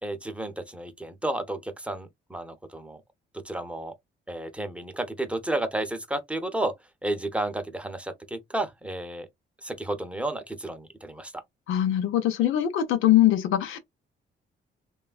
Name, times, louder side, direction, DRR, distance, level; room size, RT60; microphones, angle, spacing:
voice 1, 0.0-3.0 3.3-3.9 4.3-6.7 7.0-9.3 9.6-11.4, right 1 dB, 5° right, 0.6 m, -32 dB
voice 2, 11.7-13.8, left 12 dB, 85° left, 0.7 m, -22 dB
3.1 x 2.3 x 2.4 m
cardioid pair, 90°, 20 cm